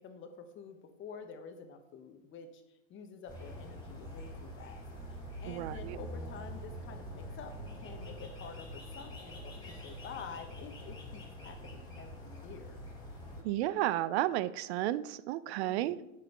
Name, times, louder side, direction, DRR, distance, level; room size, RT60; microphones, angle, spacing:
voice 1, 0.0-4.8 5.1-12.8 15.6-16.1, left 6 dB, 30° left, 7 dB, 1.0 m, -49 dB
sound 1, 3.3-13.4, equal, 10° left, 2.7 m, -45 dB
voice 2, 5.5-6.0 13.4-16.0, right 14 dB, 55° right, 16 dB, 0.5 m, -32 dB
8.8 x 6.2 x 3.0 m, 0.93 s
hypercardioid pair, 105°, 39 cm